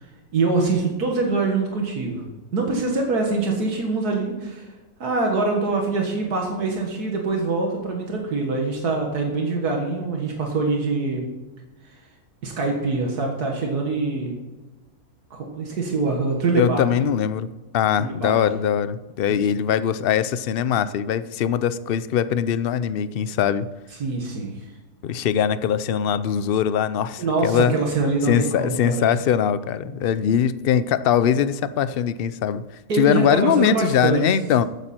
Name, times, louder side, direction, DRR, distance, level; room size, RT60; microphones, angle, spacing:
voice 1, 0.3-2.2 2.5-4.7 5.0-11.2 12.4-14.3 15.3-17.1 18.0-18.4 24.0-24.5 27.2-29.0 32.9-34.2, right 3 dB, 80° right, 0 dB, 2.1 m, -24 dB
voice 2, 16.5-17.5 17.7-23.7 25.0-27.7 28.3-32.6 33.0-34.6, left 8 dB, 65° left, 14 dB, 0.5 m, -21 dB
15.0 x 9.1 x 4.4 m, 1.2 s
omnidirectional pair, 1.6 m